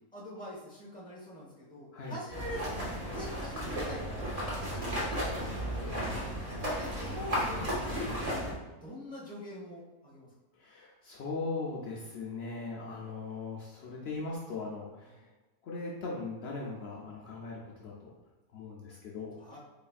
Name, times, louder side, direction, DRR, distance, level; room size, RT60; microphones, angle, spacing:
voice 1, 0.1-2.7 3.1-4.0 4.3-6.1 6.5-8.0 8.8-10.3 15.1-15.2 19.4-19.6, left 1 dB, 5° left, -5 dB, 0.9 m, -44 dB
sound 1, 2.3-8.5, equal, 30° right, 0.8 m, -34 dB
voice 2, 10.5-15.3 15.6-18.1 18.5-19.4, left 3 dB, 85° left, -3 dB, 0.5 m, -39 dB
4.1 x 3.1 x 2.4 m, 1.2 s
omnidirectional pair, 1.7 m